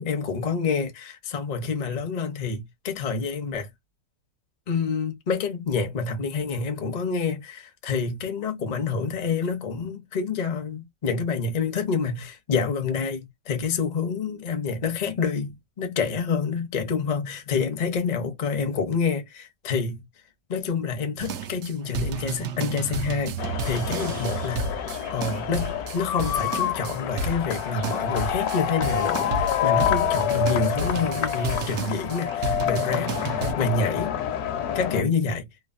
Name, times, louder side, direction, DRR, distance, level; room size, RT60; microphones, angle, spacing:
voice 1, 0.0-3.7 4.7-20.0 20.5-34.2 34.7-35.5, left 5 dB, 50° left, 0.5 m, -28 dB
sound 1, 21.2-33.5, right 4 dB, 90° right, 0.6 m, -32 dB
sound 2, 23.4-35.0, left 10 dB, 70° left, 1.0 m, -27 dB
3.1 x 2.3 x 2.4 m
omnidirectional pair, 1.9 m